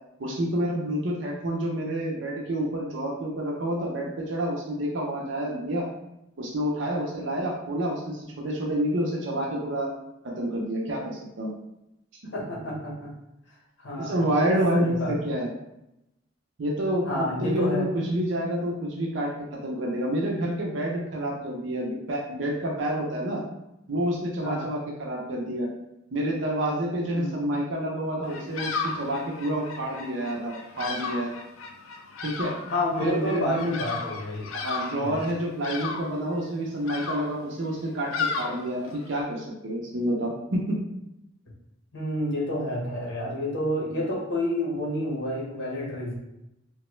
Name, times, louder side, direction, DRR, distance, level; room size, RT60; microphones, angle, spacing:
voice 1, 0.2-5.9 6.4-9.9 10.4-11.5 14.0-15.5 16.6-19.3 19.6-23.4 23.9-25.7 26.1-31.3 32.2-32.6 33.0-33.8 34.5-40.8, right 1 dB, 65° right, -2 dB, 0.6 m, -28 dB
voice 2, 12.3-13.1 13.8-14.1 14.7-15.1 17.0-17.8 24.4-24.7 27.1-27.4 32.7-34.5 35.0-35.2 41.9-46.1, left 1 dB, 65° left, -5 dB, 1.0 m, -29 dB
Bird vocalization bird call bird song, 28.2-39.2, left 4 dB, 85° left, 0.4 m, -35 dB
2.9 x 2.2 x 3.0 m, 0.88 s
head